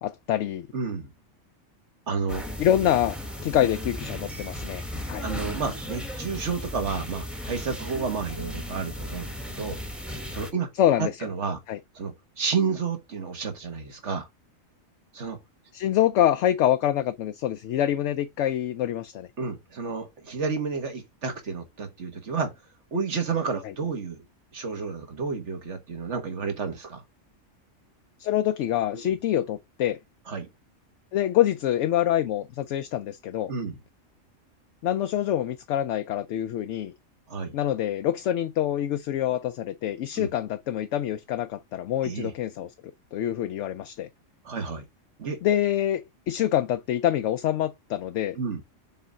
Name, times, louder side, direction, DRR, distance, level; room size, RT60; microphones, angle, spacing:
voice 1, 0.0-0.7 2.6-3.2 3.4-4.8 5.1-5.3 10.8-11.1 11.7-11.8 15.7-19.3 23.6-23.7 28.2-30.0 31.1-33.5 34.8-36.9 37.5-42.7 43.1-44.1 45.4-48.4, left 11 dB, 70° left, 0.9 m, -25 dB
voice 2, 0.7-1.1 2.1-2.5 5.2-9.8 10.3-10.7 11.0-11.6 11.9-14.3 15.1-15.4 19.4-22.5 22.9-24.2 24.5-27.0 28.9-29.0 30.3-30.5 33.5-33.8 37.3-37.5 40.1-40.3 42.0-42.3 44.4-44.8 45.2-45.4 48.3-48.6, right 5 dB, 60° right, 1.9 m, -31 dB
sound 1, 2.3-10.5, left 1 dB, ahead, 1.0 m, -36 dB
6.8 x 3.7 x 5.3 m
omnidirectional pair, 1.3 m